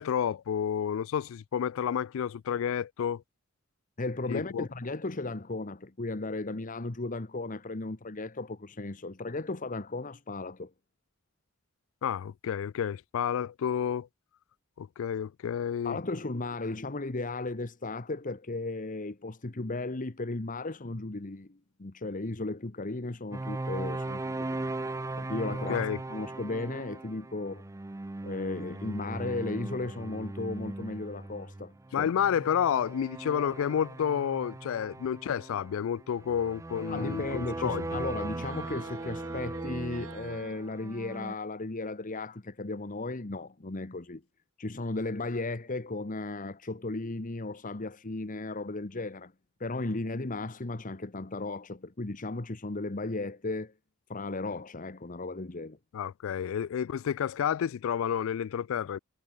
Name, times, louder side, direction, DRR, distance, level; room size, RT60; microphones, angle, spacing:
voice 1, 0.0-3.2 4.3-4.7 12.0-14.1 14.8-16.0 25.7-26.0 31.9-38.0 55.9-59.0, left 8 dB, 65° left, 0.3 m, -30 dB
voice 2, 4.0-10.7 15.8-24.7 25.2-27.6 28.2-32.1 36.9-44.2 44.6-49.3 49.6-53.7 54.1-55.8, left 2 dB, 40° left, 1.1 m, -35 dB
sound 1, 23.3-41.3, right 2 dB, 15° right, 0.4 m, -38 dB
sound 2, 38.3-40.6, right 4 dB, 70° right, 2.0 m, -46 dB
head